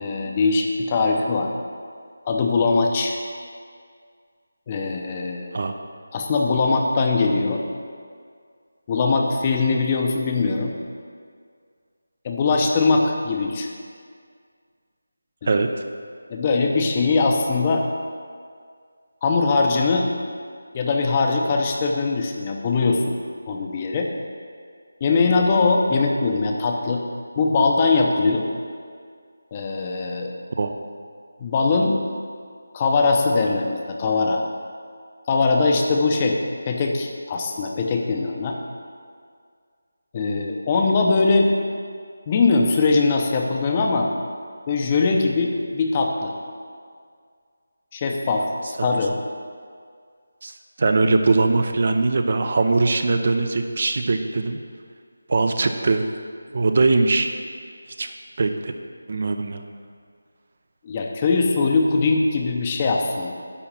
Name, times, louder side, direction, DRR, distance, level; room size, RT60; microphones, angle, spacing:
voice 1, 0.0-1.5 2.3-3.2 4.7-5.6 6.1-7.6 8.9-10.7 12.2-13.7 15.4-15.6 16.3-17.9 19.2-20.1 20.7-23.2 23.5-24.1 25.0-27.0 27.4-28.5 29.5-30.3 31.4-32.0 32.7-34.4 35.3-36.4 36.6-38.6 40.1-41.6 42.3-44.1 44.7-46.3 47.9-48.5 48.8-49.2 60.8-63.3, left 3 dB, 25° left, 2 dB, 0.7 m, -21 dB
voice 2, 50.4-54.6 55.3-56.2 56.5-57.3 58.0-58.1 58.4-58.7 59.1-59.6, right 3 dB, 45° right, 7 dB, 0.6 m, -21 dB
10.0 x 4.0 x 7.4 m, 2.1 s
figure-of-eight pair, 165°, 0 cm